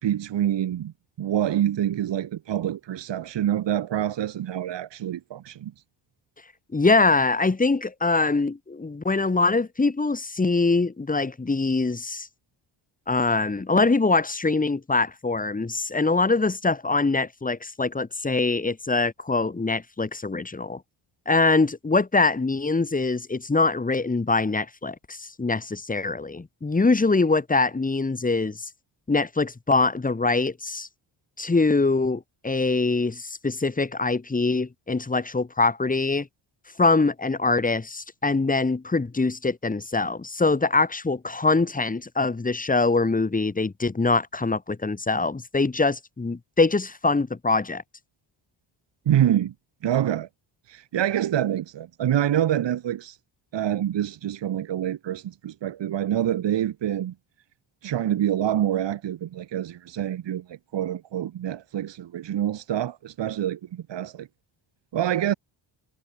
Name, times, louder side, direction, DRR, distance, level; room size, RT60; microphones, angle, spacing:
voice 1, 0.0-5.7 49.0-49.5 49.8-50.3 50.7-53.2 53.5-57.1 57.8-64.3 64.9-65.3, right 11 dB, 70° right, 3.3 m, -26 dB
voice 2, 6.7-12.3 13.1-20.8 21.3-28.7 29.1-30.9 31.4-36.3 36.8-47.8, left 3 dB, 20° left, 1.9 m, -23 dB
cardioid pair, 90°, 45 cm